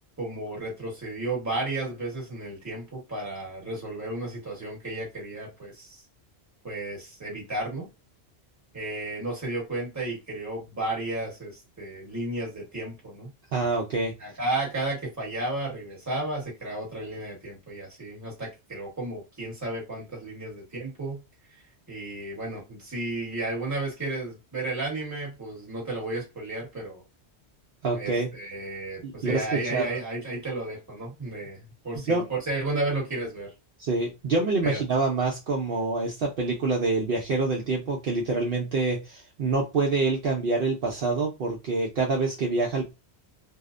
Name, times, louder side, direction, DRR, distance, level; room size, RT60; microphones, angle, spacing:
voice 1, 0.2-6.0 6.6-7.9 8.7-13.3 14.2-21.2 21.9-27.0 27.9-33.5 34.6-34.8, right 2 dB, 15° right, 1.0 m, -33 dB
voice 2, 13.5-14.1 27.8-28.3 29.0-29.8 32.1-32.3 33.8-42.9, right 3 dB, 60° right, 0.7 m, -26 dB
2.7 x 2.0 x 2.4 m
omnidirectional pair, 1.1 m